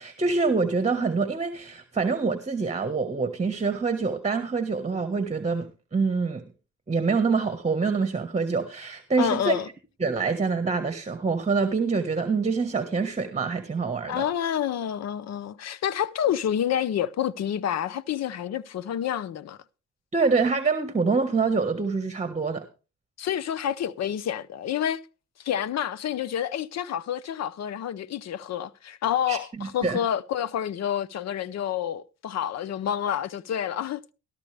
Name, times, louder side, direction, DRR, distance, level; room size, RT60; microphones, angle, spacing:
voice 1, 0.0-6.4 6.9-9.6 10.0-14.2 20.1-22.6 29.3-30.0, right 4 dB, 20° right, 1.4 m, -26 dB
voice 2, 9.2-9.7 14.1-19.6 23.2-25.0 25.4-34.0, left 10 dB, 60° left, 0.7 m, -28 dB
13.5 x 13.0 x 3.4 m
cardioid pair, 90°, 30 cm